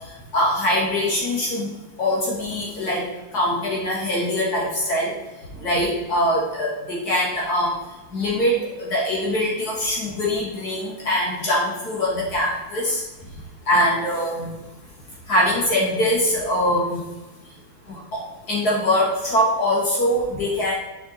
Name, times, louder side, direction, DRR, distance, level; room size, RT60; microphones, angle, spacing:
voice 1, 0.3-1.7 2.0-3.0 3.3-5.1 5.6-7.7 8.1-13.0 13.7-14.5 15.3-17.0 17.9-18.2 18.5-20.7, left 1 dB, 55° left, -5 dB, 2.1 m, -22 dB
6.7 x 4.4 x 4.1 m, 1.1 s
omnidirectional pair, 2.0 m